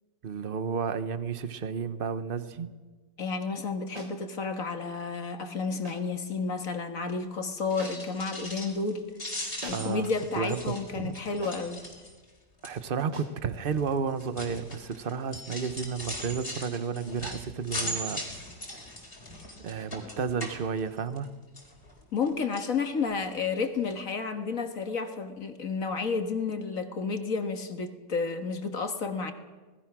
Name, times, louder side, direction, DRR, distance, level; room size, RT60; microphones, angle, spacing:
voice 1, 0.2-2.7 9.7-11.2 12.6-18.2 19.6-21.3, right 6 dB, 35° right, 12 dB, 1.0 m, -32 dB
voice 2, 3.2-9.1 9.7-11.8 22.1-29.3, left 4 dB, 50° left, 7 dB, 1.9 m, -31 dB
sound 1, 3.9-4.2 5.8-6.1 7.8-8.2 9.6-10.0 11.4-11.8 13.1-13.4, right 1 dB, 90° right, 4.1 m, -43 dB
sound 2, 7.6-8.9 9.1-12.3 12.6-13.0 13.7-21.2 21.6-22.3 22.5-22.7 23.2-23.3 23.6-23.7, left 1 dB, 30° left, 4.3 m, -39 dB
26.0 x 19.5 x 6.2 m, 1.3 s
omnidirectional pair, 2.0 m